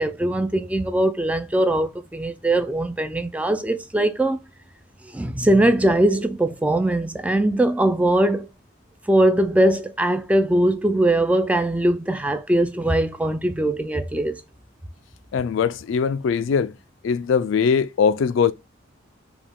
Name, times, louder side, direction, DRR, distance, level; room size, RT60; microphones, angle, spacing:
voice 1, 0.0-4.4 5.1-8.5 9.1-14.4, right 1 dB, 5° right, 0.3 m, -21 dB
voice 2, 15.3-16.7 17.0-18.5, left 6 dB, 70° left, 0.3 m, -21 dB
5.0 x 2.3 x 3.5 m
head